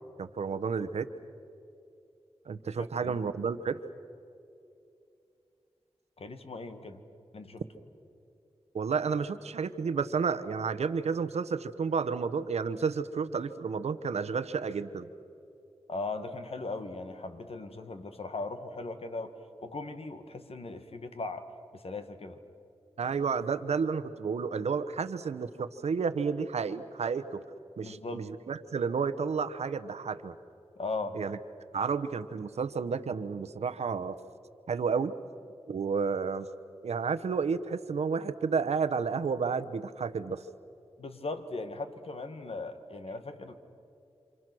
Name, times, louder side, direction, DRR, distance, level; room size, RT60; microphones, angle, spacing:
voice 1, 0.2-1.1 2.5-3.8 8.7-15.1 23.0-27.4 27.8-30.3 31.1-31.4 31.7-34.2 34.7-35.1 35.7-36.5 36.8-40.4, right 5 dB, 85° right, 11 dB, 1.0 m, -31 dB
voice 2, 2.8-3.2 6.2-7.0 7.3-7.6 15.9-19.3 19.6-21.4 21.7-22.4 27.8-28.3 30.8-31.2 41.0-43.6, left 3 dB, 65° left, 8 dB, 1.9 m, -38 dB
28.5 x 26.5 x 6.3 m, 2.6 s
cardioid pair, 55°, 11 cm